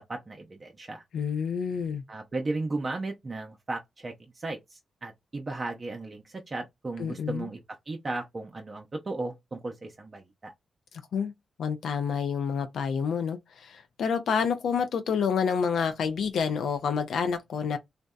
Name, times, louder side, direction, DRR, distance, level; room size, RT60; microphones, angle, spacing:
voice 1, 0.0-1.0 2.1-7.6 7.9-10.5, right 2 dB, 45° right, 0.5 m, -35 dB
voice 2, 1.1-2.0 7.0-7.5 11.1-11.3 11.6-17.8, left 6 dB, 80° left, 0.3 m, -28 dB
2.6 x 2.1 x 2.2 m
supercardioid pair, 45°, 0 cm